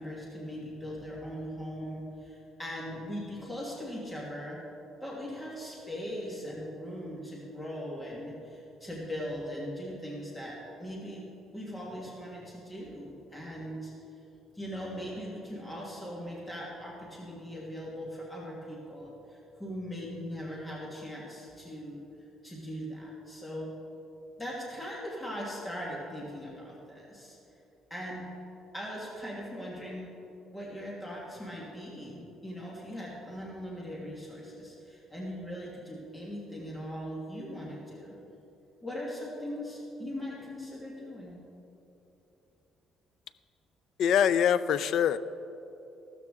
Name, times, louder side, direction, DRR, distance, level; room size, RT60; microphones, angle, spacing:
voice 1, 0.0-4.6 5.0-11.2 11.5-13.9 14.5-22.0 22.4-23.7 24.4-27.4 27.9-28.3 28.7-30.1 30.5-38.2 38.8-41.4, equal, 10° left, -5 dB, 1.5 m, -40 dB
voice 2, 44.0-45.2, left 8 dB, 55° left, 14 dB, 0.4 m, -24 dB
15.0 x 13.0 x 3.6 m, 3.0 s
cardioid pair, 180°, 0 cm